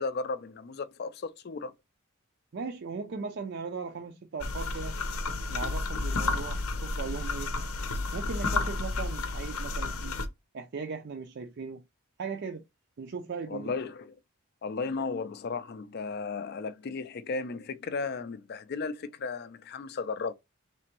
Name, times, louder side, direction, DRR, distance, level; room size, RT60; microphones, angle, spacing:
voice 1, 0.0-1.7 13.5-14.2 14.6-20.3, left 4 dB, 45° left, 0.4 m, -35 dB
voice 2, 2.5-5.0 5.5-7.5 8.1-10.2 10.5-11.8 12.2-12.6 13.0-13.7, right 5 dB, 50° right, 0.4 m, -38 dB
sound 1, 4.4-10.3, left 3 dB, 80° left, 0.7 m, -31 dB
3.4 x 2.9 x 2.9 m
head